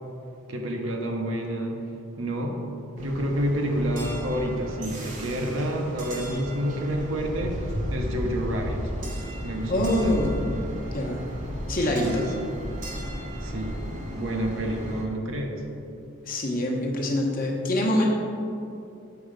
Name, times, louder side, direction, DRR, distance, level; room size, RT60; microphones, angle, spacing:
voice 1, 0.5-1.8 2.2-2.6 3.0-8.8 9.4-10.2 11.9-12.5 13.4-13.8 14.1-15.6, equal, 65° right, 1 dB, 0.9 m, -29 dB
sound 1, 3.0-15.0, equal, 35° right, 0.9 m, -34 dB
voice 2, 9.7-10.4 10.9-11.2 11.7-12.3 16.2-18.1, left 1 dB, 40° left, -2 dB, 1.0 m, -25 dB
6.9 x 4.4 x 5.1 m, 2.6 s
head